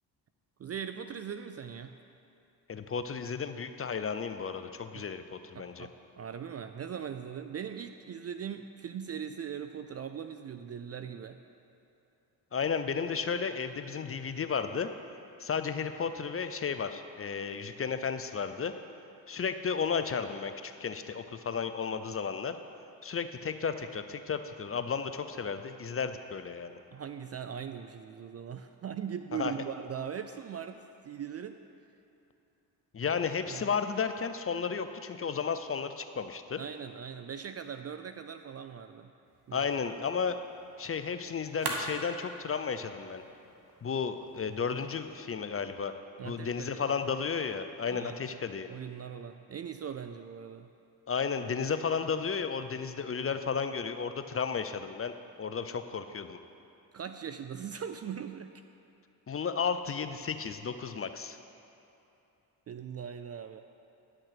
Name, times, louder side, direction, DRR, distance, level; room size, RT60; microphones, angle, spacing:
voice 1, 0.6-1.9 4.9-5.1 5.5-11.4 26.9-31.6 33.0-33.1 33.5-33.7 36.6-39.1 39.5-39.7 46.2-46.9 47.9-48.3 48.7-50.7 56.9-58.5 62.7-63.6, right 8 dB, 35° right, 8 dB, 0.4 m, -40 dB
voice 2, 2.7-5.9 12.5-14.9 15.4-18.7 19.3-22.6 23.0-26.8 29.4-29.5 32.9-36.6 39.5-40.4 40.8-43.2 43.8-45.9 46.2-48.7 51.1-56.4 59.3-61.4, left 6 dB, 30° left, 9 dB, 0.6 m, -33 dB
sound 1, 39.2-45.2, right 2 dB, 50° right, 1.7 m, -43 dB
10.0 x 6.6 x 5.8 m, 2.8 s
hypercardioid pair, 50°, 50 cm